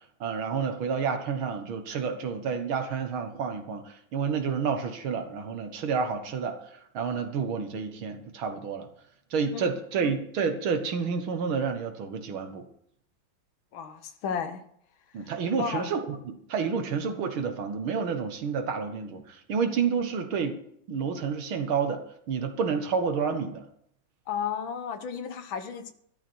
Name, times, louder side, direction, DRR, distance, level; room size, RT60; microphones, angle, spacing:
voice 1, 0.2-6.6 6.9-8.9 9.3-12.7 15.1-20.6 20.9-22.0 22.3-23.6, right 6 dB, 85° right, 6 dB, 2.2 m, -29 dB
voice 2, 13.7-14.6 15.2-15.3 15.6-15.9 24.3-25.9, left 7 dB, 80° left, 9 dB, 1.9 m, -33 dB
12.5 x 12.0 x 4.6 m, 0.69 s
omnidirectional pair, 2.2 m